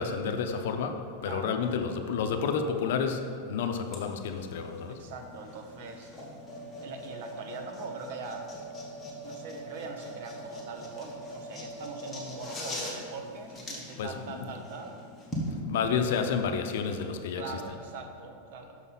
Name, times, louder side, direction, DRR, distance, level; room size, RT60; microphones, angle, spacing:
voice 1, 0.0-5.0 14.0-14.5 15.5-17.6, left 6 dB, 70° left, 6 dB, 0.6 m, -30 dB
voice 2, 1.2-1.6 4.9-6.1 6.8-8.5 9.2-15.0 17.4-18.8, right 4 dB, 60° right, 5 dB, 0.9 m, -42 dB
sound 1, 3.9-15.5, equal, 10° left, 1.3 m, -41 dB
6.4 x 5.5 x 5.7 m, 2.4 s
supercardioid pair, 160°, 0 cm